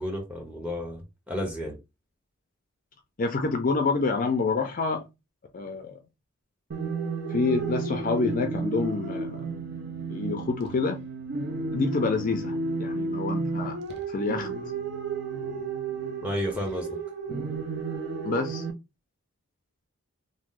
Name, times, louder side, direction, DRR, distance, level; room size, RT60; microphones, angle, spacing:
voice 1, 0.0-1.8 16.2-17.0, equal, 5° right, 0.9 m, -32 dB
voice 2, 3.2-5.0 5.5-6.0 7.3-9.4 10.1-11.0 11.7-13.7 14.1-14.5 18.2-18.6, left 4 dB, 40° left, 0.4 m, -27 dB
sound 1, 6.7-18.7, right 4 dB, 50° right, 0.6 m, -32 dB
3.0 x 2.0 x 3.6 m
head